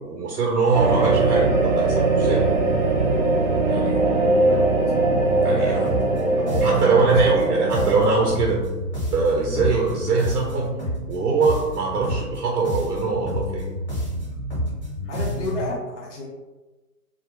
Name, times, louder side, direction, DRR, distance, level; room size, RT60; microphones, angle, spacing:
voice 1, 0.0-2.4 3.7-4.0 5.4-5.8 6.6-8.6 9.1-10.7 11.1-13.7, right 4 dB, 85° right, -2 dB, 0.6 m, -22 dB
sound 1, 0.7-8.1, right 2 dB, 35° right, 0.4 m, -20 dB
voice 2, 5.6-5.9 6.4-7.1 15.1-16.3, left 1 dB, 50° left, -2 dB, 0.6 m, -31 dB
sound 2, 5.8-15.7, equal, 5° left, 0.8 m, -30 dB
2.3 x 2.1 x 2.9 m, 1.2 s
figure-of-eight pair, 125°, 46 cm